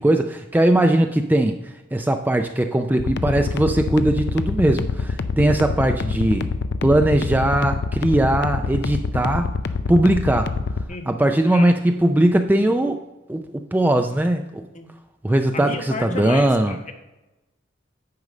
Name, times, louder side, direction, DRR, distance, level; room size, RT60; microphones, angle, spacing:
voice 1, 0.0-6.5 6.8-9.5 9.9-10.6 11.1-13.0 13.3-13.4 13.7-14.6 15.2-16.8, right 1 dB, 10° right, 6 dB, 0.3 m, -19 dB
sound 1, 3.0-10.8, left 4 dB, 60° left, 0.4 m, -25 dB
voice 2, 15.5-16.9, left 3 dB, 40° left, 5 dB, 1.1 m, -32 dB
9.6 x 5.2 x 4.9 m, 1.0 s
head